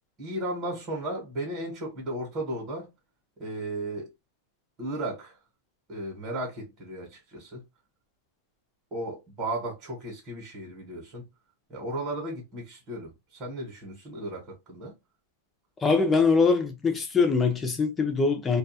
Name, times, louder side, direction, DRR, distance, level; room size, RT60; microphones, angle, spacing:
voice 1, 0.2-2.9 3.4-4.1 4.8-5.4 5.9-7.6 8.9-11.3 11.7-14.9, right 1 dB, 20° right, 1.0 m, -35 dB
voice 2, 15.8-18.6, left 4 dB, 10° left, 0.5 m, -23 dB
2.3 x 2.2 x 2.7 m
supercardioid pair, 165°, 0 cm